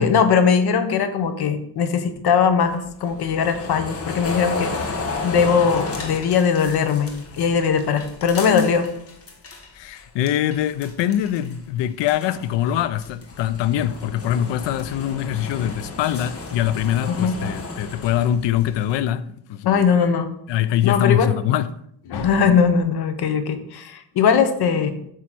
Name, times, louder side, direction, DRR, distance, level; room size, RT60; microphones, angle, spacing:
voice 1, 0.0-4.7 5.2-8.9 17.1-17.3 19.6-20.3 20.8-21.4 22.1-25.1, left 6 dB, 60° left, 1.0 m, -20 dB
sound 1, 2.6-9.7 10.0-11.6 11.9-19.0, left 3 dB, 30° left, 1.2 m, -33 dB
voice 2, 9.7-19.9 20.5-21.7, left 11 dB, 75° left, 0.5 m, -23 dB
8.1 x 3.1 x 6.0 m
cardioid pair, 150°, 44 cm